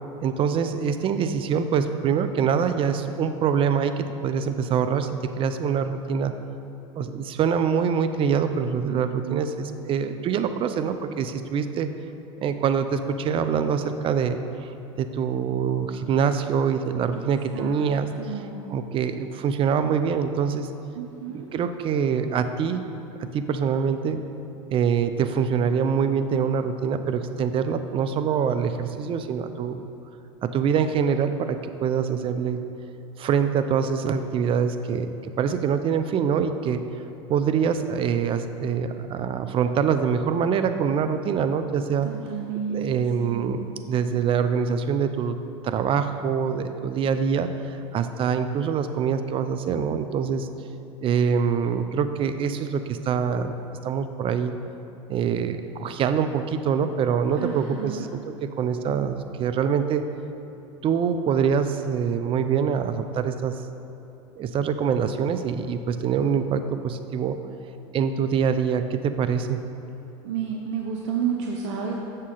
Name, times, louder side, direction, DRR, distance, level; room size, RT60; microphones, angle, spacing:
voice 1, 0.2-5.1 5.4-6.4 7.0-11.9 12.4-14.7 15.0-20.7 21.3-22.8 23.2-24.2 24.7-29.9 30.4-32.6 33.2-36.8 37.3-42.1 42.7-45.4 45.6-50.5 51.0-53.5 53.8-54.5 55.1-60.0 60.8-63.6 64.4-67.4 67.9-69.6, right 7 dB, 35° right, 9 dB, 0.5 m, -25 dB
voice 2, 8.9-9.6 17.5-18.7 21.0-21.5 42.0-43.6 57.4-58.1 70.2-71.9, right 7 dB, 70° right, 0 dB, 0.7 m, -31 dB
7.2 x 6.5 x 3.8 m, 2.9 s
supercardioid pair, 105°, 16 cm